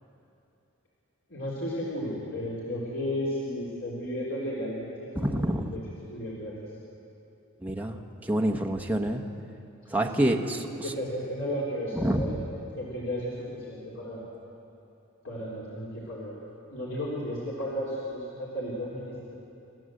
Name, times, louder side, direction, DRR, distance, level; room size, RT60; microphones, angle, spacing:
voice 1, 1.3-5.8 6.1-6.8 9.9-12.4 12.7-14.2 15.2-16.4 16.7-19.4, equal, 65° left, -7 dB, 3.9 m, -34 dB
voice 2, 5.2-5.7 7.6-9.2 9.9-10.7 11.9-12.4, right 1 dB, 5° right, 1 dB, 1.1 m, -27 dB
29.5 x 14.0 x 7.8 m, 2.8 s
head